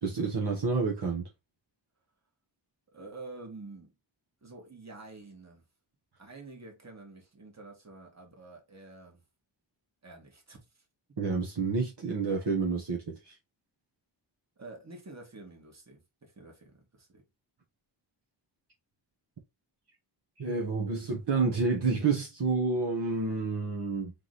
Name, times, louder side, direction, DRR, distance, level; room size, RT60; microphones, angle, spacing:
voice 1, 0.0-1.3 11.2-13.4 20.4-24.1, right 4 dB, 60° right, 1.2 m, -29 dB
voice 2, 2.9-4.0 4.4-5.7 6.2-9.2 10.0-10.8 14.6-17.2, right 3 dB, 35° right, 1.9 m, -48 dB
3.7 x 3.2 x 4.0 m
wide cardioid pair, 85°, 47 cm